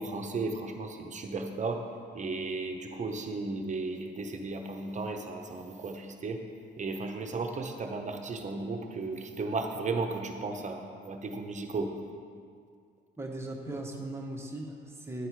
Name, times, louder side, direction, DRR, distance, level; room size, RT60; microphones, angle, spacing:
voice 1, 0.0-1.8 2.1-6.4 6.8-11.9, right 3 dB, 35° right, 4 dB, 0.8 m, -35 dB
voice 2, 13.2-15.3, right 1 dB, 15° right, 0 dB, 1.0 m, -38 dB
9.9 x 4.1 x 4.7 m, 2.2 s
cardioid pair, 90°, 20 cm